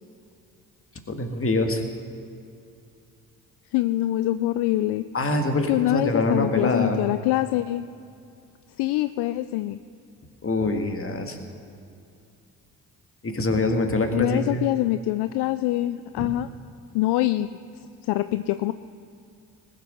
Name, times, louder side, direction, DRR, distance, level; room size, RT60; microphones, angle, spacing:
voice 1, 1.1-1.8 5.1-7.0 10.4-11.4 13.2-14.7 16.2-16.3, left 2 dB, 30° left, 5 dB, 1.9 m, -24 dB
voice 2, 3.7-5.0 5.7-7.8 8.8-9.8 14.1-16.5 16.9-17.5 18.0-18.7, left 15 dB, 65° left, 12 dB, 0.5 m, -24 dB
19.5 x 6.9 x 6.3 m, 2.5 s
hypercardioid pair, 45°, 43 cm